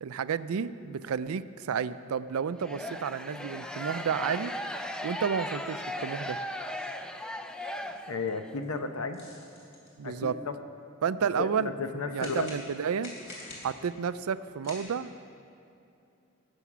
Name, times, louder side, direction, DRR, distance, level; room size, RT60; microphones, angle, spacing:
voice 1, 0.0-4.5 5.0-6.4 10.0-10.4 11.0-11.7 12.0-13.1 13.6-15.1, right 7 dB, 80° right, 15 dB, 0.4 m, -31 dB
sound 1, 2.6-8.5, equal, 5° left, 0.4 m, -37 dB
sound 2, 5.4-6.2 7.5-7.6 8.3-8.4 8.6-9.9 12.2-13.9 14.6-14.8, left 2 dB, 60° left, 3.3 m, -47 dB
voice 2, 8.1-9.2 10.0-10.6 11.4-12.5, left 4 dB, 85° left, 7 dB, 0.9 m, -33 dB
18.0 x 7.0 x 6.1 m, 2.7 s
head